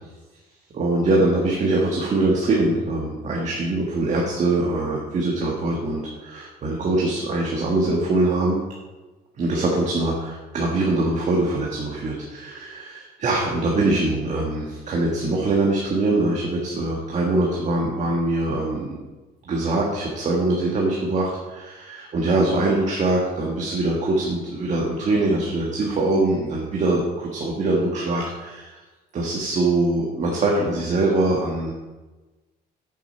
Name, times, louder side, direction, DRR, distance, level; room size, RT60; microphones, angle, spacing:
voice 1, 0.7-8.6 9.4-18.9 19.4-28.8 29.1-31.7, right 2 dB, 45° right, -2 dB, 1.6 m, -23 dB
8.5 x 6.9 x 4.5 m, 1.2 s
cardioid pair, 110°, 17 cm